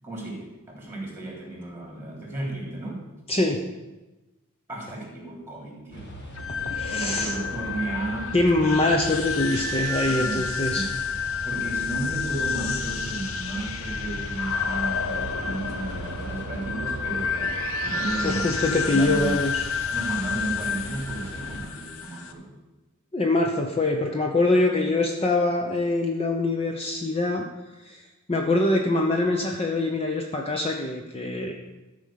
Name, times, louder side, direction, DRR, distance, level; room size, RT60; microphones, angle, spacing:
voice 1, 0.0-3.0 4.7-6.1 6.5-8.3 10.0-10.8 11.4-18.5 18.8-19.4 19.9-22.5, right 2 dB, 10° right, -2 dB, 3.2 m, -34 dB
voice 2, 3.3-3.6 6.7-7.4 8.3-10.9 18.2-19.6 23.1-27.4 27.9-28.0 28.3-31.5, left 2 dB, 25° left, 2 dB, 0.8 m, -24 dB
sound 1, 5.9-21.6, right 1 dB, 50° left, 1.6 m, -39 dB
sound 2, 6.3-22.3, left 5 dB, 65° left, 0.9 m, -30 dB
13.0 x 5.1 x 7.5 m, 1.1 s
head